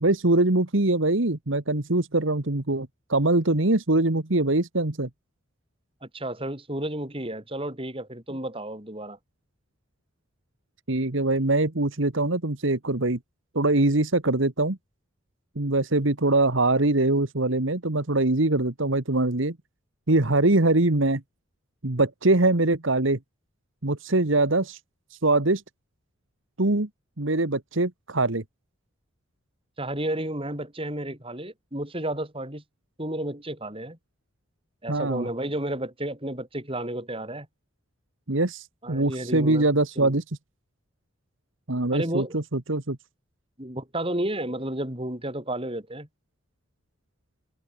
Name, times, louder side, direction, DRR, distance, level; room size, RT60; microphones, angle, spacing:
voice 1, 0.0-5.1 10.9-13.2 13.6-14.8 15.6-19.6 20.1-21.2 21.8-23.2 23.8-24.8 25.2-25.6 26.6-26.9 27.2-28.4 34.9-35.3 38.3-40.2 41.7-43.0, right 2 dB, 65° right, 1.7 m, -23 dB
voice 2, 6.0-9.2 29.8-32.6 33.0-34.0 34.8-37.5 38.8-40.1 41.9-42.4 43.6-46.1, right 1 dB, 25° right, 6.3 m, -32 dB
head